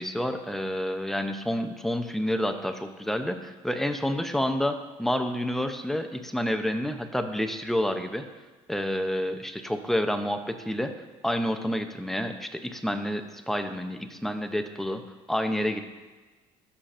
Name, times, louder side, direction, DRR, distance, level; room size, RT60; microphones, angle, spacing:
voice 1, 0.0-8.2 8.7-10.9 11.2-15.0 15.3-15.8, equal, ahead, 7 dB, 0.6 m, -29 dB
14.0 x 5.8 x 2.5 m, 1.3 s
cardioid pair, 110°, 13 cm